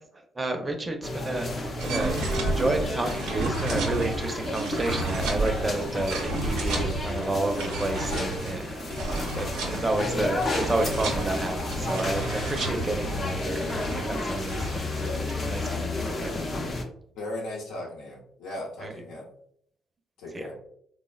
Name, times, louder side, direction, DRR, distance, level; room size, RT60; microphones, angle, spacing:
voice 1, 0.4-16.3 18.8-18.9 20.3-20.4, right 2 dB, 25° right, 4 dB, 0.5 m, -31 dB
sound 1, 1.0-16.8, left 2 dB, 40° left, 0.6 m, -32 dB
sound 2, 1.8-15.7, right 2 dB, 90° right, 0.7 m, -33 dB
voice 2, 17.2-19.3 20.2-20.6, left 1 dB, 85° left, -1 dB, 0.7 m, -37 dB
3.3 x 2.1 x 2.3 m, 0.67 s
supercardioid pair, 70°, 0 cm